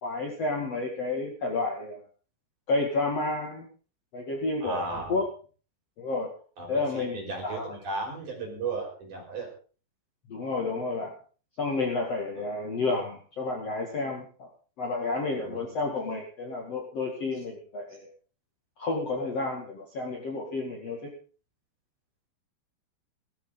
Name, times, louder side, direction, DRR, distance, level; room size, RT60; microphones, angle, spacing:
voice 1, 0.0-2.0 2.7-3.7 4.1-5.2 6.0-6.3 6.7-7.7 10.3-11.1 11.6-14.5 14.8-18.1 18.8-21.1, left 3 dB, 45° left, 0 dB, 2.6 m, -30 dB
voice 2, 4.6-5.2 6.6-9.5 12.4-12.5 15.3-15.7, right 3 dB, 45° right, 0 dB, 6.6 m, -35 dB
17.5 x 14.0 x 3.9 m, 0.38 s
omnidirectional pair, 5.1 m